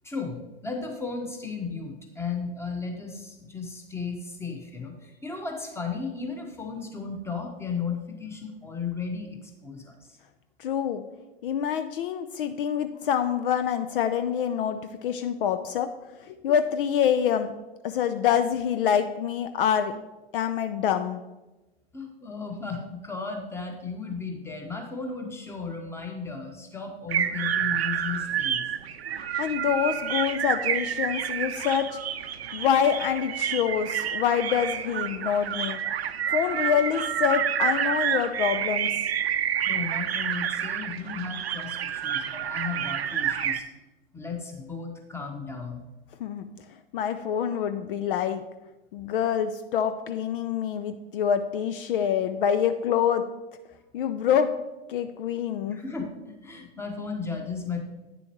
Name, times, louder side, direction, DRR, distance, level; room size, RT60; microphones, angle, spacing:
voice 1, 0.0-10.2 21.9-28.7 39.6-43.6 44.1-45.8 55.7-57.8, left 5 dB, 10° left, 3 dB, 1.2 m, -35 dB
voice 2, 10.6-11.0 11.4-15.9 16.2-17.5 17.8-19.9 20.3-21.2 29.4-32.0 32.5-35.8 36.3-38.9 46.2-46.4 46.9-48.4 48.9-53.2 53.9-54.5 54.9-55.8, left 8 dB, 60° left, 9 dB, 0.5 m, -26 dB
sound 1, 27.1-43.6, right 9 dB, 80° right, 0.6 m, -29 dB
9.2 x 6.9 x 3.0 m, 1.1 s
hypercardioid pair, 95°, 31 cm